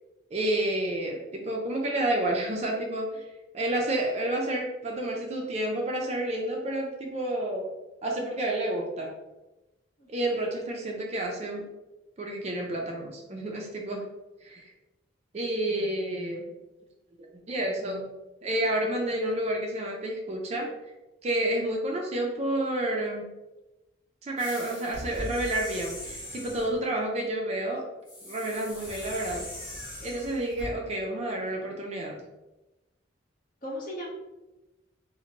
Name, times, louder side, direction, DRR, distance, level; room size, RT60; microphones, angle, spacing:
voice 1, 0.3-3.2 3.5-7.7 8.0-9.1 10.1-11.6 12.2-14.0 14.4-14.7 15.3-16.5 17.3-18.1 18.4-20.7 21.2-23.3 24.2-27.9 28.2-29.5 30.0-32.2, right 1 dB, 35° right, 0 dB, 0.4 m, -30 dB
voice 2, 10.0-10.4 18.8-19.2 33.6-34.1, left 1 dB, 45° left, -4 dB, 0.8 m, -39 dB
sound 1, 24.4-26.8 28.1-30.7, left 1 dB, 20° left, 1.0 m, -40 dB
2.7 x 2.1 x 2.8 m, 1.0 s
head